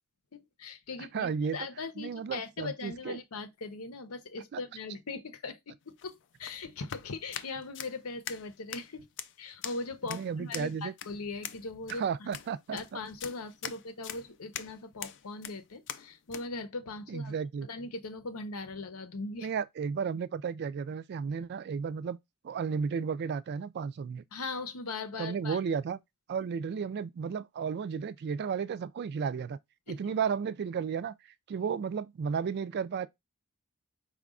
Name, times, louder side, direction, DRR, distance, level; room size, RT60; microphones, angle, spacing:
voice 1, 0.3-9.1 9.4-12.0 12.7-17.3 17.7-19.5 24.3-25.6 29.9-30.0, left 3 dB, 75° left, 0.8 m, -40 dB
voice 2, 1.0-1.6 2.0-3.2 4.5-4.6 10.1-10.9 11.9-13.0 17.1-17.7 19.4-22.2 22.4-24.2 25.2-26.0 26.3-29.6 29.9-31.1 31.5-33.1, right 6 dB, 50° right, 0.3 m, -33 dB
sound 1, 5.8-16.5, left 10 dB, 55° left, 0.4 m, -44 dB
4.9 x 2.3 x 3.6 m
head